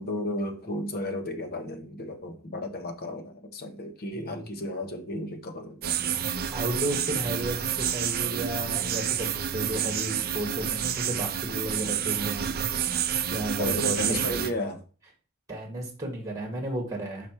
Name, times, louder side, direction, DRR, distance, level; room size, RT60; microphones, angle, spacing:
voice 1, 0.0-6.2 13.6-14.8, left 1 dB, 45° left, 1.0 m, -34 dB
voice 2, 4.1-4.5 6.5-12.5 12.9-14.5 15.5-17.3, right 1 dB, 15° right, 1.9 m, -33 dB
sound 1, 5.8-14.5, right 9 dB, 45° right, 0.5 m, -29 dB
5.9 x 5.0 x 4.5 m
head